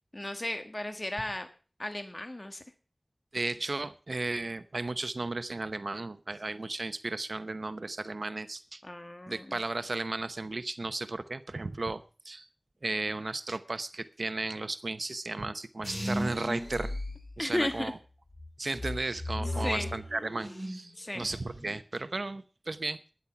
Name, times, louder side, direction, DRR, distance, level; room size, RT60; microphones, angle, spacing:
voice 1, 0.1-1.5 1.8-2.6 8.8-9.6 17.4-17.9 19.6-19.9 20.9-21.3, left 1 dB, 35° left, 7 dB, 1.4 m, -34 dB
voice 2, 3.3-8.8 9.3-12.5 12.8-16.9 17.4-18.0 18.6-23.0, right 2 dB, 85° right, 12 dB, 0.8 m, -35 dB
sound 1, 15.8-17.9 18.3-20.9 21.2-21.8, left 1 dB, 20° left, 5.0 m, -36 dB
12.5 x 10.5 x 5.8 m, 0.36 s
wide cardioid pair, 50°, 0 cm